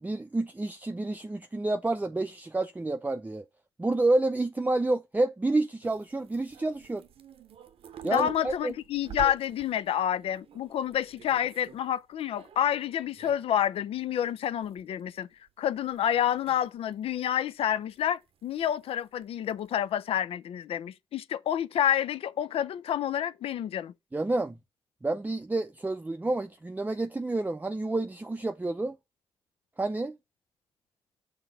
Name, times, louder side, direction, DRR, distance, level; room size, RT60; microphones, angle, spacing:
voice 1, 0.0-3.4 3.8-7.0 8.0-8.7 24.1-24.6 25.0-29.0 29.8-30.2, right 2 dB, 15° right, 0.5 m, -29 dB
sound 1, 5.8-11.9 12.1-13.7 14.0-14.1 14.5-15.0 15.2-16.9 17.3-18.0 18.4-19.2 19.5-20.0, right 9 dB, 80° right, 0.7 m, -48 dB
voice 2, 8.0-15.3 15.6-23.9, left 10 dB, 80° left, 0.4 m, -29 dB
5.7 x 3.6 x 5.3 m
cardioid pair, 55°, 10 cm